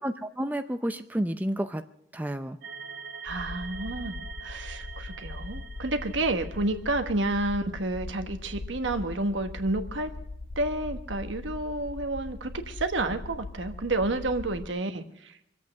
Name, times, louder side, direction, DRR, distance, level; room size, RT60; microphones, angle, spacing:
voice 1, 0.0-1.8 2.1-2.6, right 1 dB, 10° right, 8 dB, 0.5 m, -30 dB
sound 1, 2.6-6.9, right 6 dB, 70° right, 2.3 m, -43 dB
voice 2, 3.2-10.1 10.6-15.3, right 2 dB, 85° right, 8 dB, 1.2 m, -30 dB
sound 2, 3.3-14.7, left 2 dB, 75° left, 0.7 m, -41 dB
24.0 x 8.3 x 6.5 m, 0.78 s
head